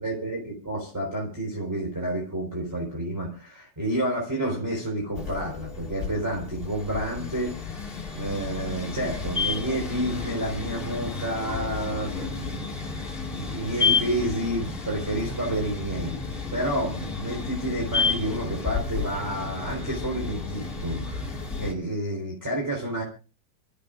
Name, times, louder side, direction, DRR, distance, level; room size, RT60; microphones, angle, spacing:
voice 1, 0.0-16.2 16.5-23.0, right 1 dB, 5° right, -1 dB, 3.5 m, -30 dB
sound 1, 5.1-21.7, left 5 dB, 35° left, 0.8 m, -31 dB
28.0 x 15.0 x 2.5 m, 0.34 s
omnidirectional pair, 5.1 m